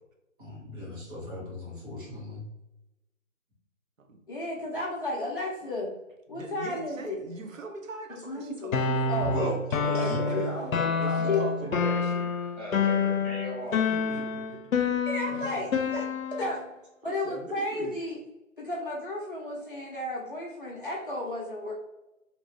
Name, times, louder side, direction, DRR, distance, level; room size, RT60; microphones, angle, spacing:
voice 1, 0.4-2.4 9.2-9.6 9.9-10.2, left 1 dB, 40° right, -6 dB, 1.4 m, -37 dB
voice 2, 4.3-5.9 6.3-7.2 8.1-9.5 9.8-10.7 11.3-11.5 15.1-16.0 16.4-16.6 17.0-18.2 18.6-21.7, left 2 dB, 40° left, -3 dB, 0.5 m, -33 dB
voice 3, 6.3-8.7 10.0-10.5 11.0-12.3 13.7-14.7 15.3-15.7 17.0-18.0, right 2 dB, 75° right, 4 dB, 0.8 m, -42 dB
sound 1, 8.7-16.6, left 5 dB, 90° left, 0.5 m, -28 dB
voice 4, 9.8-12.1 12.6-13.8, equal, 5° right, -19 dB, 0.7 m, -37 dB
2.8 x 2.6 x 3.1 m, 0.98 s
figure-of-eight pair, 155°, 40 cm